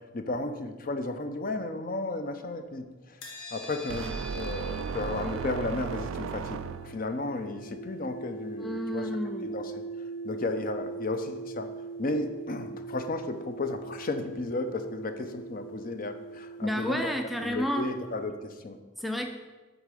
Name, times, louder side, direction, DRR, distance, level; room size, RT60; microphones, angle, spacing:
voice 1, 0.0-9.1 9.4-9.8 10.2-11.7 12.0-17.1 17.4-18.8, left 2 dB, 45° left, 8 dB, 0.6 m, -34 dB
sound 1, 3.2-18.2, right 3 dB, 80° left, 1.6 m, -42 dB
sound 2, 3.9-7.1, right 6 dB, 80° right, 0.3 m, -35 dB
voice 2, 8.6-9.5 16.6-18.0 19.0-19.3, equal, ahead, 4 dB, 0.4 m, -31 dB
8.0 x 3.6 x 6.7 m, 1.2 s
head